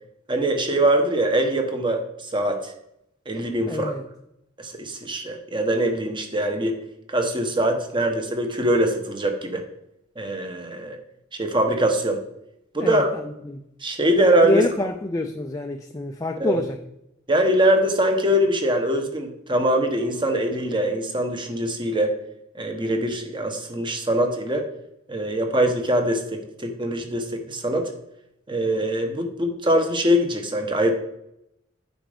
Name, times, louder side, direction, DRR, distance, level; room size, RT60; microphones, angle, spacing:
voice 1, 0.3-2.7 3.3-3.9 4.6-6.8 7.1-9.6 10.2-11.0 11.3-12.2 12.7-13.1 13.8-14.6 16.4-16.6 17.3-22.1 22.5-24.6 25.1-27.9 28.5-30.9, right 1 dB, 25° right, 4 dB, 1.1 m, -23 dB
voice 2, 3.7-4.0 12.8-13.6 14.4-16.8, left 1 dB, 15° left, 4 dB, 0.4 m, -26 dB
9.1 x 5.2 x 5.1 m, 0.81 s
head